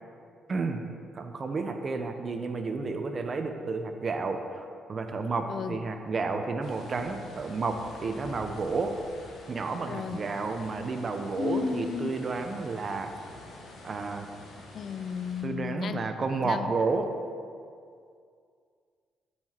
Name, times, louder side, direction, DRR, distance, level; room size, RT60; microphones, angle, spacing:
voice 1, 0.5-0.8 1.1-8.9 9.5-13.1 13.8-14.3 15.4-17.1, right 4 dB, 40° right, 6 dB, 0.7 m, -31 dB
voice 2, 5.5-5.8 9.9-10.3 11.4-12.1 14.7-16.1 16.4-16.7, left 6 dB, 55° left, 11 dB, 0.4 m, -33 dB
sound 1, 6.6-15.4, left 2 dB, 80° left, 1.3 m, -48 dB
7.6 x 5.8 x 4.4 m, 2.3 s
cardioid pair, 90°, 0 cm